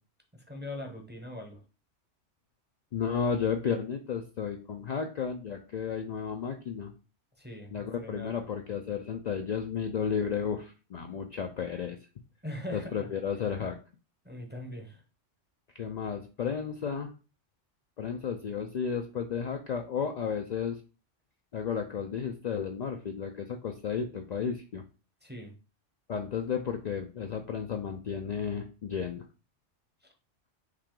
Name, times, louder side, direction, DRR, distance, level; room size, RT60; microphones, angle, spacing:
voice 1, 0.3-1.6 7.4-8.4 12.4-13.1 14.2-15.0 25.2-25.5 30.0-30.1, left 1 dB, 10° right, 2 dB, 0.6 m, -41 dB
voice 2, 2.9-6.9 7.7-12.0 12.7-13.8 15.8-17.1 18.0-20.8 21.5-24.8 26.1-29.3, left 7 dB, 75° left, 4 dB, 0.3 m, -33 dB
4.9 x 2.8 x 3.7 m, 0.34 s
omnidirectional pair, 1.2 m